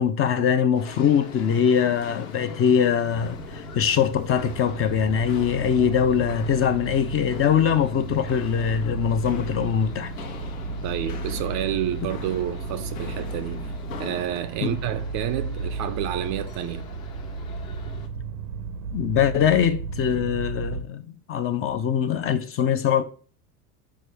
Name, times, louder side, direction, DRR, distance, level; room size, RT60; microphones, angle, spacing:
voice 1, 0.0-10.1 14.6-14.8 18.9-23.0, left 8 dB, 30° left, 0.5 m, -22 dB
Walk footsteps, 0.7-14.5, left 6 dB, 65° left, 1.1 m, -42 dB
sound 1, 0.7-18.1, left 7 dB, 50° left, 1.3 m, -46 dB
sound 2, 3.1-20.8, right 4 dB, 80° right, 0.7 m, -34 dB
voice 2, 10.8-16.9, right 12 dB, 40° right, 0.5 m, -29 dB
6.3 x 4.4 x 3.4 m
hypercardioid pair, 85°, 46 cm